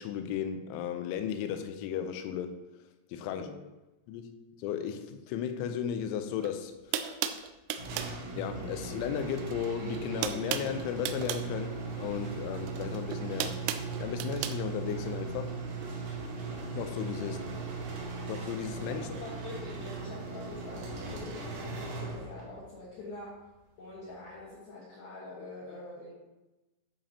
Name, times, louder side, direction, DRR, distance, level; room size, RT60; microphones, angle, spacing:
voice 1, 0.0-2.6 3.1-3.5 4.1-6.7 8.3-13.6 14.0-15.6 16.7-17.4 18.3-19.1, left 8 dB, 80° left, 7 dB, 2.9 m, -35 dB
voice 2, 3.2-3.6 17.2-17.5 19.1-23.4 23.8-26.1, left 2 dB, 65° left, -7 dB, 2.7 m, -45 dB
sound 1, 6.4-6.5 6.9-8.2 9.4-9.7 9.9-11.5 12.7-14.6, right 10 dB, 90° right, 3.2 m, -35 dB
sound 2, 7.7-22.7, right 4 dB, 60° right, 3.2 m, -38 dB
10.5 x 5.1 x 2.8 m, 1.0 s
omnidirectional pair, 5.8 m